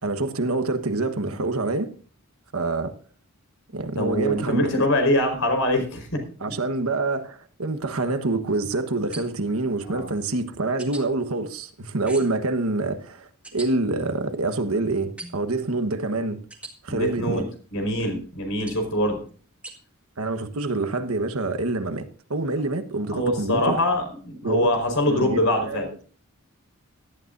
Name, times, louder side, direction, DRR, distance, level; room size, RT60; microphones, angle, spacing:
voice 1, 0.0-1.9 2.5-2.9 3.7-4.8 6.4-16.4 16.8-17.5 20.2-23.8 24.4-24.7 25.1-25.9, right 2 dB, 90° right, 1.3 m, -26 dB
voice 2, 4.0-6.6 9.8-10.1 16.9-17.4 17.7-19.2 23.1-25.9, left 1 dB, 70° left, 4.7 m, -24 dB
sound 1, 9.1-9.6 10.8-11.0 12.1-12.5 13.4-13.7 15.2-15.5 16.5-16.7 18.7-18.9 19.6-19.8, right 2 dB, 5° right, 1.9 m, -40 dB
18.0 x 12.5 x 2.6 m
head